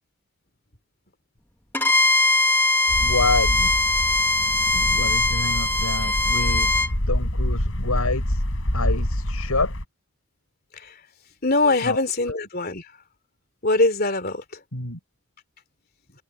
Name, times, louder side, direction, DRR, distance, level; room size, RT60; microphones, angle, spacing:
Bowed string instrument, 1.7-6.9, left 2 dB, 10° left, 1.0 m, -21 dB
sound 1, 2.9-9.8, left 1 dB, 65° left, 3.9 m, -26 dB
voice 1, 3.0-3.8 4.7-6.7 7.1-8.4 8.7-9.7 11.8-12.4 14.7-15.0, left 3 dB, 80° left, 6.2 m, -28 dB
voice 2, 11.4-12.9 13.6-14.6, left 2 dB, 40° left, 3.1 m, -22 dB
head